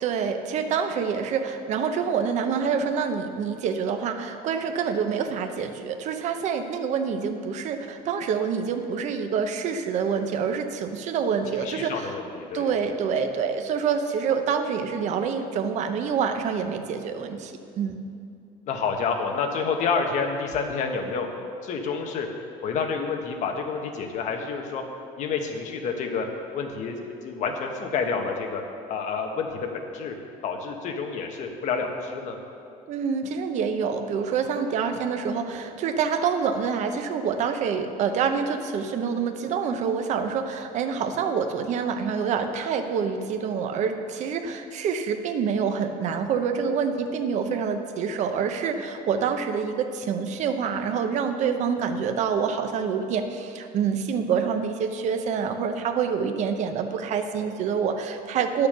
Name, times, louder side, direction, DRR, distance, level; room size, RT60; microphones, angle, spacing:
voice 1, 0.0-12.2 12.5-18.0 32.9-58.7, right 6 dB, 45° right, 6 dB, 0.8 m, -27 dB
voice 2, 11.5-12.8 18.7-21.3 21.6-22.3 22.6-24.8 25.2-26.3 26.5-28.6 28.9-30.1 30.4-32.4, left 5 dB, 50° left, 3 dB, 1.2 m, -29 dB
10.0 x 6.8 x 6.8 m, 2.5 s
cardioid pair, 160°, 16 cm